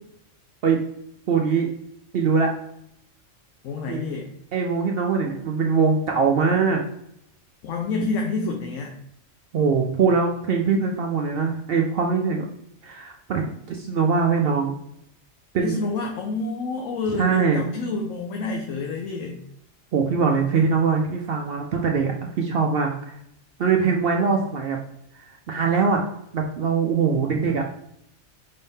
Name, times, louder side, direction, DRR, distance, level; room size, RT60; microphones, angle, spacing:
voice 1, 1.3-1.7 2.1-2.5 3.9-4.0 4.5-6.8 9.5-12.5 12.8-14.7 15.5-15.8 17.2-17.6 19.9-22.9 23.6-24.8 25.1-26.0 26.3-27.6, right 5 dB, 60° right, 2 dB, 0.6 m, -22 dB
voice 2, 3.6-4.3 7.6-9.0 15.6-19.4, left 3 dB, 80° left, 2 dB, 1.0 m, -28 dB
5.4 x 3.5 x 2.7 m, 0.76 s
omnidirectional pair, 1.3 m